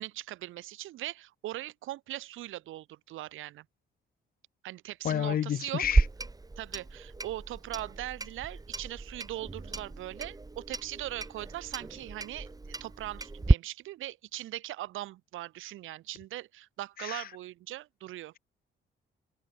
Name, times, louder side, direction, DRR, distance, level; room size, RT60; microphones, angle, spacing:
voice 1, 0.0-3.6 4.6-5.9 6.6-12.5 12.8-18.3, right 15 dB, 85° right, 2.9 m, -40 dB
voice 2, 5.0-6.0 17.0-17.2, left 10 dB, 50° left, 0.5 m, -30 dB
Clock, 5.8-13.5, right 3 dB, 20° right, 3.1 m, -32 dB
cardioid pair, 90°, 20 cm